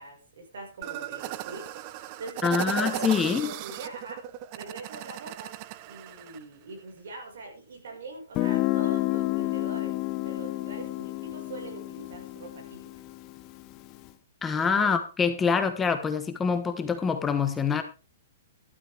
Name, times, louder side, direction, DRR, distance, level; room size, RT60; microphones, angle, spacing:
voice 1, 0.0-1.7 2.2-4.2 4.5-5.5 5.9-9.9 10.2-12.8 14.8-14.9, right 3 dB, 75° right, 5.4 m, -42 dB
sound 1, 0.8-6.4, right 14 dB, 35° right, 0.6 m, -37 dB
voice 2, 2.4-3.5 14.4-17.8, left 6 dB, 10° left, 1.1 m, -25 dB
Guitar, 8.4-13.9, left 18 dB, 30° left, 0.6 m, -30 dB
12.5 x 11.5 x 3.5 m
hypercardioid pair, 150°, 0 cm